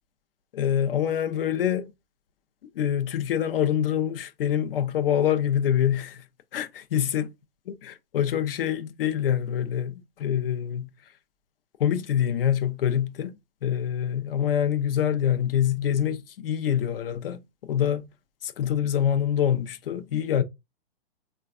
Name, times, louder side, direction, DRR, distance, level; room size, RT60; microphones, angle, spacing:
voice 1, 0.5-1.9 2.8-6.2 6.5-7.3 7.7-10.9 11.8-13.4 13.6-18.0 18.4-20.4, left 9 dB, 65° left, 0.5 m, -25 dB
3.2 x 2.3 x 2.4 m
hypercardioid pair, 145°, 30 cm